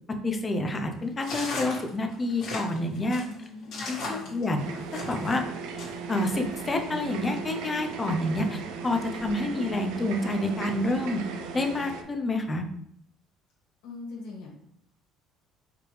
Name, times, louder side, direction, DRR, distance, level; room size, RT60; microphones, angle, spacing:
voice 1, 0.2-3.2 3.9-4.6 5.1-5.4 6.1-11.2 11.5-12.7, left 2 dB, 20° left, 4 dB, 0.5 m, -28 dB
sound 1, 1.2-5.4 5.8-6.3, left 2 dB, 55° left, 1.8 m, -36 dB
voice 2, 3.2-4.9 13.8-14.5, left 3 dB, 85° left, -3 dB, 1.6 m, -42 dB
sound 2, 4.6-12.0, right 5 dB, 80° right, 0.5 m, -37 dB
4.9 x 3.2 x 3.3 m, 0.70 s
cardioid pair, 155°, 0 cm